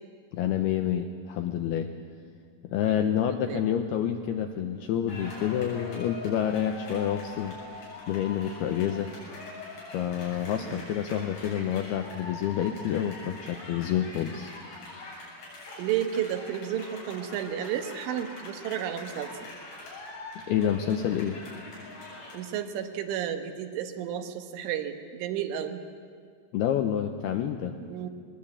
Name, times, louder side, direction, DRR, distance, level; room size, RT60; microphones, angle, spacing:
voice 1, 0.3-1.9 2.6-7.6 8.1-9.1 9.9-14.5 20.4-21.4 26.5-27.8, left 9 dB, 85° left, 5 dB, 2.3 m, -28 dB
voice 2, 3.0-3.6 10.7-10.9 15.8-19.5 22.3-25.8 27.8-28.1, right 10 dB, 80° right, 6 dB, 3.7 m, -32 dB
sound 1, 5.1-22.4, left 2 dB, 65° left, 9.4 m, -43 dB
21.0 x 20.5 x 8.7 m, 2.1 s
omnidirectional pair, 5.5 m